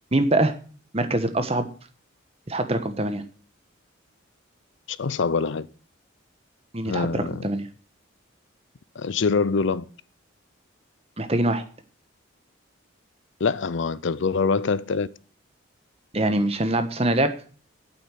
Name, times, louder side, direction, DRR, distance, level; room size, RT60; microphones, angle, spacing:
voice 1, 0.1-0.5 0.9-1.7 2.5-3.2 6.7-7.7 11.2-11.6 16.1-17.3, right 1 dB, 30° right, 1.2 m, -23 dB
voice 2, 4.9-5.7 6.8-7.4 9.0-9.8 13.4-15.1, left 4 dB, 60° left, 0.5 m, -24 dB
8.8 x 8.5 x 7.6 m
head